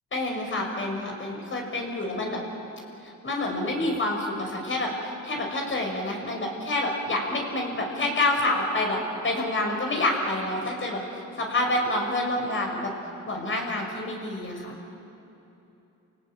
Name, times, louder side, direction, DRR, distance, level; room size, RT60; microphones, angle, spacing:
voice 1, 0.1-2.4 3.0-12.9 13.3-14.8, left 2 dB, 40° left, 1 dB, 6.4 m, -28 dB
29.0 x 18.0 x 9.2 m, 2.9 s
cardioid pair, 90°, 30 cm